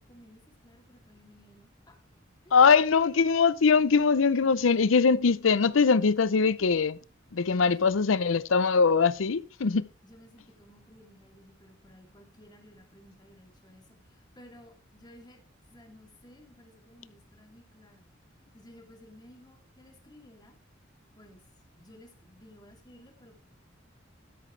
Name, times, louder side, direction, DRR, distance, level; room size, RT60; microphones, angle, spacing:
voice 1, 0.0-1.9 2.4-2.6 7.6-8.2 9.6-9.7 10.0-15.4 15.7-18.1 18.5-20.5 21.1-21.4 21.8-23.4, left 1 dB, 20° left, 2.8 m, -55 dB
voice 2, 2.5-7.0 7.3-9.9, left 5 dB, 80° left, 0.6 m, -22 dB
12.5 x 11.0 x 3.2 m
head